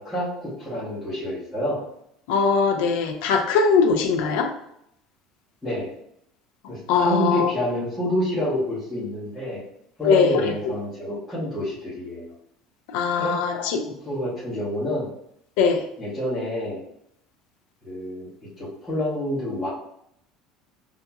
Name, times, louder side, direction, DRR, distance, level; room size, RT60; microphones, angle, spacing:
voice 1, 0.0-1.8 4.2-4.3 5.6-5.9 6.7-9.6 10.0-12.3 13.2-13.4 13.8-15.1 16.0-16.8 17.8-18.3 18.6-19.7, left 1 dB, 5° left, -12 dB, 1.1 m, -28 dB
voice 2, 2.3-4.5 6.9-7.5 10.0-10.5 12.9-13.8 15.6-15.8, left 5 dB, 75° left, 4 dB, 0.5 m, -21 dB
5.7 x 2.6 x 2.3 m, 0.74 s
cardioid pair, 180°, 0 cm